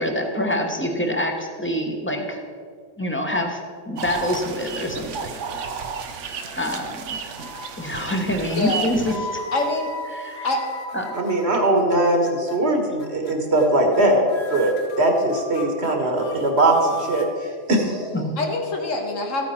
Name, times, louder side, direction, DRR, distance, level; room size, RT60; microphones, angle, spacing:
voice 1, 0.0-2.4 3.0-3.6 3.9-5.4 6.6-7.2 7.8-9.4 10.1-10.5 10.9-11.1 18.1-18.3, left 1 dB, 10° left, 2 dB, 1.1 m, -26 dB
sound 1, 4.0-9.2, right 6 dB, 70° right, 1.1 m, -33 dB
sound 2, 6.4-7.0 7.4-7.9 8.6-11.9 12.2-12.6 13.0-13.3 13.6-13.7 13.9-14.0 14.3-17.3, left 1 dB, 60° left, 1.3 m, -36 dB
voice 2, 8.6-8.9 9.5-9.9 10.4-10.6 18.4-19.5, left 2 dB, 80° left, 2 dB, 1.8 m, -24 dB
voice 3, 11.1-14.2 14.5-14.7 15.0-17.2 17.7-18.2, right 1 dB, 55° right, 2 dB, 1.8 m, -20 dB
13.5 x 9.3 x 4.4 m, 2.2 s
omnidirectional pair, 1.3 m